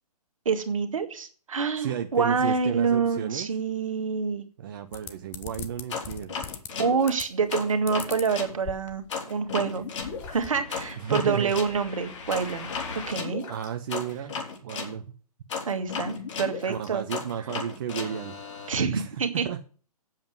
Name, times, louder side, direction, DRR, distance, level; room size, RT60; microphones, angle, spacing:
voice 1, 0.4-4.4 6.8-9.8 10.3-12.7 13.1-13.4 15.7-17.0 18.7-19.5, right 5 dB, 55° right, 7 dB, 1.7 m, -27 dB
voice 2, 1.8-3.5 4.6-6.5 11.0-11.6 13.5-14.4 14.6-15.0 16.7-18.4 18.9-19.6, right 8 dB, 35° right, 6 dB, 0.7 m, -33 dB
sound 1, 4.9-6.7 7.1-7.5 7.9-9.2 9.5-9.6 9.8-10.5, left 8 dB, 10° left, 0.5 m, -40 dB
sound 2, 5.9-8.5 9.1-14.9 15.5-18.7, left 5 dB, 50° left, 3.2 m, -35 dB
8.8 x 7.4 x 7.7 m, 0.41 s
figure-of-eight pair, 125°, 20 cm